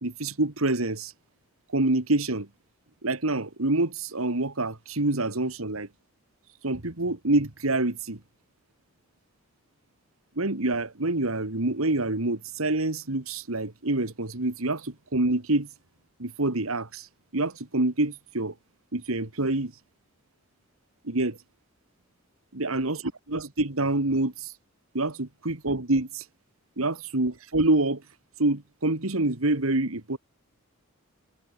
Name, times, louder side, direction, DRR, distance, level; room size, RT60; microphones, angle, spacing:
voice 1, 0.0-1.1 1.7-2.5 3.0-5.9 6.6-8.2 10.4-15.7 16.2-18.5 18.9-19.7 21.0-21.4 22.5-23.0 23.3-24.6 24.9-26.3 26.8-28.0 28.4-30.2, right 2 dB, 80° right, 2.2 m, -26 dB
head